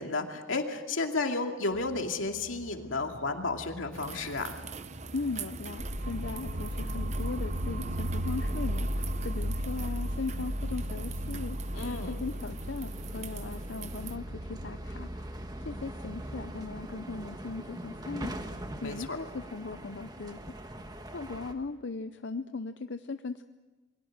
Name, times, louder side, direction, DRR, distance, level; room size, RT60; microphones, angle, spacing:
voice 1, 0.0-4.6 11.7-12.2 18.8-19.2, left 3 dB, 85° left, 3 dB, 2.5 m, -32 dB
sound 1, 1.7-21.5, right 1 dB, 20° right, 1.4 m, -45 dB
sound 2, 3.9-14.2, right 4 dB, 35° right, 0.7 m, -43 dB
voice 2, 5.1-18.3 18.8-20.4 20.6-20.7 21.1-23.4, left 4 dB, 65° left, 9 dB, 0.7 m, -38 dB
sound 3, 5.8-17.7, equal, 55° right, 1.9 m, -35 dB
28.5 x 22.0 x 6.6 m, 1.2 s
head